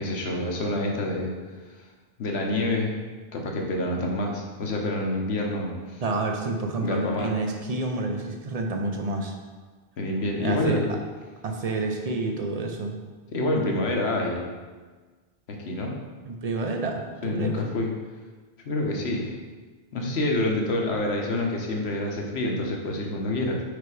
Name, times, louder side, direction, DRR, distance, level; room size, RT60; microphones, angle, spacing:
voice 1, 0.0-1.3 2.2-2.9 3.3-6.0 6.8-7.3 10.0-11.0 13.3-14.5 15.5-15.9 17.2-17.9 18.6-19.3 19.9-23.6, left 1 dB, 85° left, 0 dB, 1.2 m, -27 dB
voice 2, 6.0-9.4 10.4-10.8 11.4-13.0 16.2-17.6, right 3 dB, 40° right, 3 dB, 0.7 m, -29 dB
5.0 x 4.6 x 4.8 m, 1.4 s
omnidirectional pair, 1.1 m